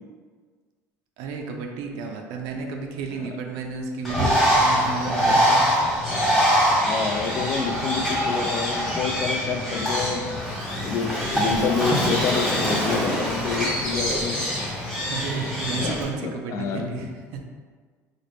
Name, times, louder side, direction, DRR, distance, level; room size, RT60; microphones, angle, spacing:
voice 1, 1.2-5.6 15.0-17.4, right 4 dB, 80° right, 2 dB, 0.4 m, -32 dB
Bird, 4.0-16.0, equal, 5° left, 1.0 m, -24 dB
Breathing, 6.3-10.5, left 1 dB, 15° right, 0.7 m, -32 dB
voice 2, 6.8-10.3 10.8-14.5 15.0-15.1 15.7-16.9, left 5 dB, 50° left, 5 dB, 0.4 m, -28 dB
4.0 x 2.0 x 3.3 m, 1.6 s
cardioid pair, 115°, 6 cm